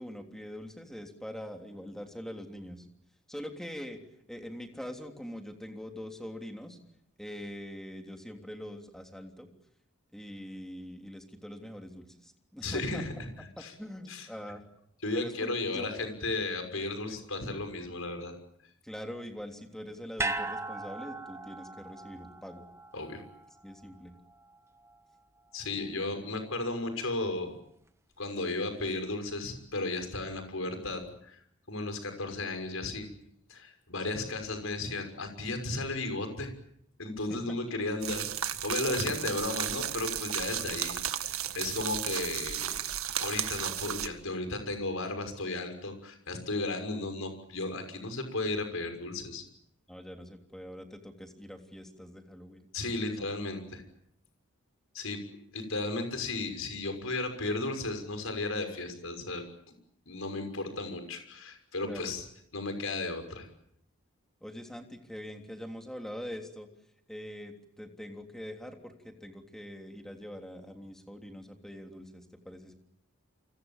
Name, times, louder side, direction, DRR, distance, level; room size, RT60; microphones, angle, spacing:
voice 1, 0.0-2.8 3.3-4.0 4.3-6.8 7.2-9.5 10.1-13.0 13.8-14.6 15.1-15.9 17.1-17.2 18.8-22.6 23.6-24.1 37.3-37.4 38.8-38.9 49.9-52.7 53.1-53.3 61.8-62.1 64.4-66.7 67.1-72.7, equal, ahead, 4 dB, 3.3 m, -43 dB
voice 2, 12.6-13.3 13.6-13.7 14.1-14.3 15.0-18.3 22.9-23.2 25.5-27.6 28.2-31.4 31.7-33.1 33.5-36.5 37.0-42.8 43.2-49.4 52.7-53.8 54.9-55.2 55.5-59.4 60.1-62.3 62.5-63.5, left 2 dB, 70° left, 6 dB, 6.2 m, -34 dB
sound 1, 20.2-24.5 24.8-24.9, right 2 dB, 15° right, 1.4 m, -38 dB
sound 2, 38.0-44.1, right 11 dB, 80° right, 1.8 m, -34 dB
29.5 x 25.5 x 7.4 m, 0.72 s
head